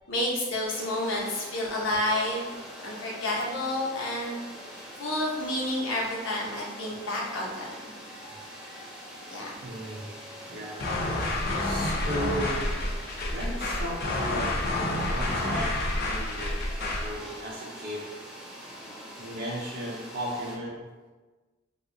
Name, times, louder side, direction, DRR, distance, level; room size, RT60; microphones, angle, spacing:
voice 1, 0.1-2.5 2.8-4.3 5.0-7.9 9.3-9.5 11.3-11.4, left 1 dB, 85° left, -3 dB, 0.9 m, -30 dB
sound 1, 0.6-20.6, equal, 5° right, 0.5 m, -44 dB
voice 2, 2.2-2.6 7.6-8.4 8.8-8.9 9.6-10.1 10.4-10.9 11.6-12.7 13.3-18.1 19.2-20.8, right 1 dB, 50° right, -5 dB, 0.5 m, -37 dB
sound 2, 10.8-17.1, left 1 dB, 55° left, 0.6 m, -29 dB
2.8 x 2.3 x 3.7 m, 1.3 s
head